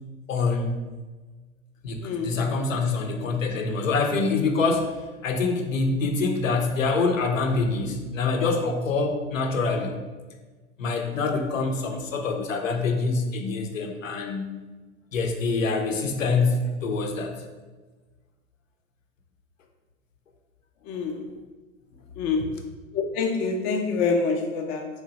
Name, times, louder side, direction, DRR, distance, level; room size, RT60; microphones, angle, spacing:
voice 1, 0.3-0.8 1.8-10.0 10.8-14.5 15.1-17.3, left 3 dB, 85° left, 3 dB, 0.6 m, -25 dB
voice 2, 2.0-2.4 20.9-21.2 22.2-22.4 22.9-24.9, left 4 dB, 25° left, 3 dB, 0.4 m, -26 dB
3.1 x 2.2 x 3.9 m, 1.3 s
hypercardioid pair, 95°, 38 cm